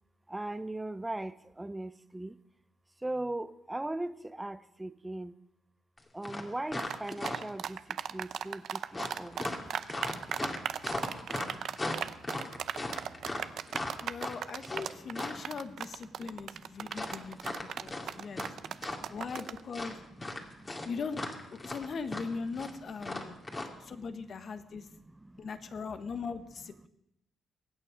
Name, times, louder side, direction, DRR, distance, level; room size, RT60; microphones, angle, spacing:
voice 1, 0.3-2.4 3.0-5.4 6.1-9.4 13.7-14.1 15.2-15.3 16.1-19.2 20.2-20.9 23.3-24.0 24.7-25.7, right 1 dB, 10° right, 14 dB, 0.7 m, -41 dB
sound 1, 6.0-6.1 6.2-7.6 8.9-15.5 16.9-18.5 18.8-19.5 19.7-23.7, left 2 dB, 25° left, 2.3 m, -37 dB
sound 2, 6.8-19.6, right 9 dB, 65° right, 0.6 m, -36 dB
voice 2, 14.0-18.5 18.7-19.9 20.8-21.2 21.5-23.4 23.8-24.9 25.4-26.9, left 5 dB, 50° left, 9 dB, 1.3 m, -40 dB
23.0 x 8.9 x 5.1 m, 0.82 s
cardioid pair, 90°, 0 cm